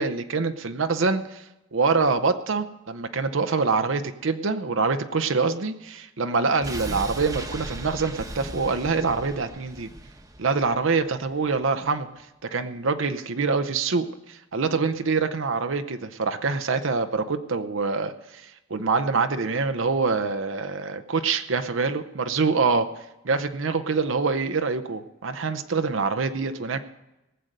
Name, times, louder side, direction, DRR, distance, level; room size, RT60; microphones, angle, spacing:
voice 1, 0.0-1.4 1.7-9.9 10.4-12.1 12.4-22.9 23.2-26.8, right 4 dB, 75° right, 8 dB, 0.7 m, -25 dB
sound 1, 6.6-11.6 11.9-12.0, right 1 dB, 15° right, 1.0 m, -37 dB
19.0 x 7.8 x 6.6 m, 0.94 s
head